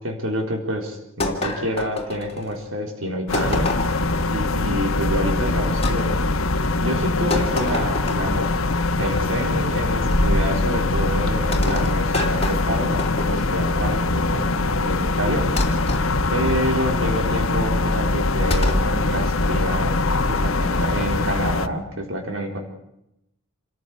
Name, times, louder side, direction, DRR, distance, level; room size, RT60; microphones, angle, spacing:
voice 1, 0.0-3.8 4.3-6.2 6.8-8.5 9.0-14.5 14.8-15.5 16.3-19.9 20.3-22.6, equal, 70° right, 2 dB, 4.0 m, -27 dB
sound 1, 1.2-2.6 3.3-4.2 5.8-6.0 7.3-8.4 10.1-10.5 11.5-13.6 15.6-16.1 18.5-18.9, left 1 dB, 30° left, 3.1 m, -26 dB
sound 2, 3.3-21.7, left 2 dB, 80° left, 1.2 m, -22 dB
28.0 x 14.0 x 8.4 m, 0.83 s
head